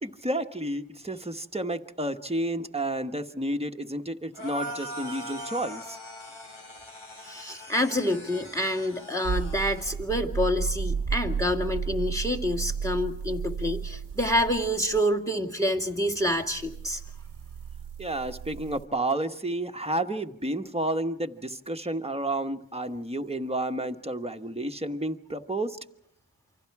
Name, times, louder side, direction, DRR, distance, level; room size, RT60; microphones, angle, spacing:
voice 1, 0.0-6.0 18.0-25.8, right 1 dB, 15° right, 5 dB, 1.2 m, -31 dB
sound 1, 4.3-10.0, equal, 90° left, 3.5 m, -41 dB
voice 2, 7.2-17.0, equal, 5° left, 5 dB, 2.2 m, -27 dB
sound 2, 9.2-15.0 16.5-18.9, right 6 dB, 60° right, 0.8 m, -33 dB
28.5 x 25.0 x 4.8 m, 0.73 s
wide cardioid pair, 40°, 46 cm